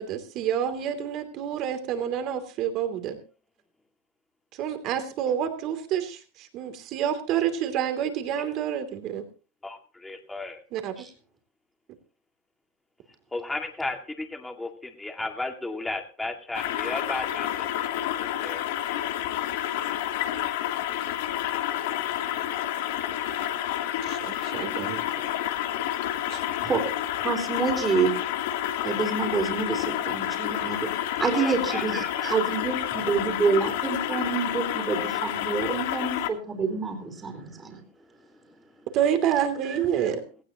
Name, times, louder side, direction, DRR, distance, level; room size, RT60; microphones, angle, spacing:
voice 1, 0.0-3.2 4.5-9.2 10.7-11.1 24.1-25.0 26.3-26.4 38.9-40.2, right 9 dB, 45° right, 8 dB, 2.9 m, -28 dB
voice 2, 9.6-10.6 13.3-17.9 18.2-18.6 31.3-32.3 38.5-38.9, left 2 dB, 10° left, 4 dB, 2.1 m, -35 dB
sound 1, 16.5-36.3, left 12 dB, 65° left, 1.7 m, -29 dB
voice 3, 27.2-28.1 28.8-30.9 31.2-37.8 39.6-39.8, right 4 dB, 25° right, 3 dB, 3.7 m, -27 dB
18.0 x 15.5 x 3.0 m, 0.35 s
hypercardioid pair, 115°, 0 cm